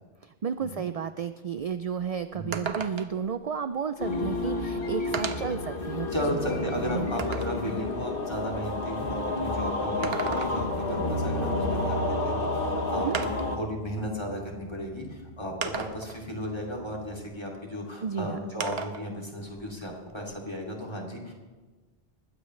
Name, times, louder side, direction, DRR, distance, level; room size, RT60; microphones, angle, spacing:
voice 1, 0.2-7.3 13.0-13.2 18.0-18.4, right 7 dB, 50° right, 11 dB, 0.4 m, -33 dB
sound 1, 1.6-1.7 2.0-2.1 2.5-3.3 4.3-4.4 5.1-5.6 6.2-7.6 9.8-10.8 12.3-12.4 13.1-13.6 14.6-14.7 15.6-16.2 18.6-19.1 19.4-20.6, right 6 dB, 75° right, 1.1 m, -35 dB
sound 2, 4.0-13.6, left 2 dB, 60° left, 1.7 m, -30 dB
voice 2, 6.1-13.3 13.5-21.3, equal, 25° left, -1 dB, 2.7 m, -35 dB
Bass guitar, 11.0-17.3, right 2 dB, 35° right, 1.1 m, -38 dB
20.5 x 15.5 x 3.2 m, 1.3 s
omnidirectional pair, 1.0 m